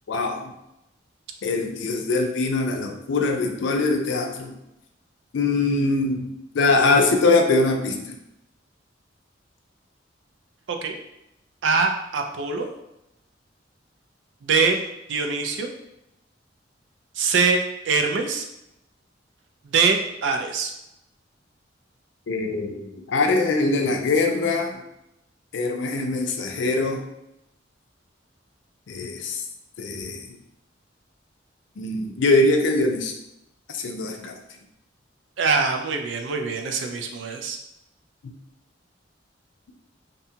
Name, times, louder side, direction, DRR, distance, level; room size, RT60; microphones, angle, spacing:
voice 1, 0.1-0.5 1.4-4.5 5.3-6.3 6.5-8.1 22.3-24.8 25.5-27.0 28.9-29.4 29.8-30.2 31.8-33.1 33.7-34.3, left 3 dB, 70° left, 3 dB, 0.4 m, -22 dB
voice 2, 11.6-12.7 14.4-14.8 15.1-15.7 17.2-17.6 17.9-18.5 19.6-20.7 35.4-37.6, right 4 dB, 70° right, 4 dB, 0.4 m, -23 dB
2.6 x 2.2 x 2.7 m, 0.87 s
head